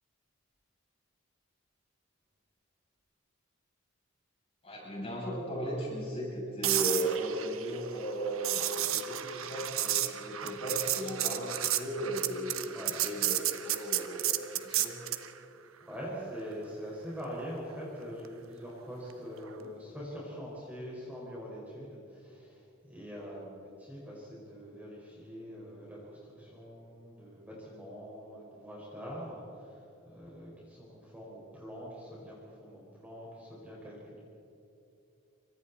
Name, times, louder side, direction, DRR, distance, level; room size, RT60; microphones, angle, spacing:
voice 1, 4.6-15.0, right 1 dB, 25° left, -4 dB, 7.3 m, -36 dB
sound 1, 6.6-15.3 19.5-19.7, right 13 dB, 75° right, 1.1 m, -32 dB
voice 2, 15.8-22.6 22.9-29.8 30.1-34.2, equal, 5° right, -5 dB, 5.2 m, -44 dB
28.0 x 25.0 x 4.3 m, 2.8 s
head